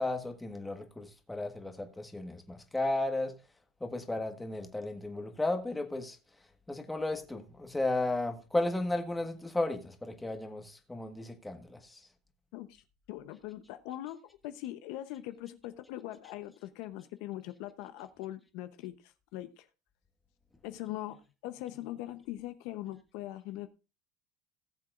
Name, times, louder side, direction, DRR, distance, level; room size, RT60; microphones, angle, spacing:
voice 1, 0.0-3.3 3.8-6.2 6.7-12.0, left 2 dB, 5° left, 1.4 m, -34 dB
voice 2, 13.1-14.2 14.4-19.7 20.6-23.7, left 14 dB, 65° left, 0.8 m, -41 dB
18.5 x 7.5 x 2.5 m
supercardioid pair, 135°, 0 cm